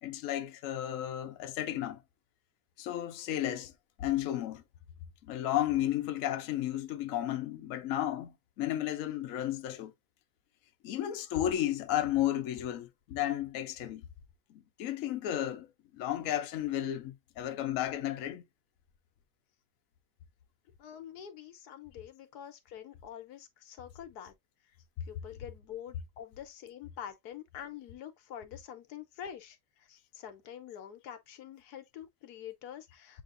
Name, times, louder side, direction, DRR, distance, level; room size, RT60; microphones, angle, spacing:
voice 1, 0.0-2.0 2.8-3.7 4.0-4.6 5.2-9.9 10.8-14.0 14.5-15.7 15.9-18.4, left 12 dB, 65° left, 0.9 m, -33 dB
voice 2, 20.8-24.3 25.0-33.2, left 9 dB, 90° left, 1.3 m, -46 dB
7.3 x 2.9 x 2.5 m
omnidirectional pair, 1.6 m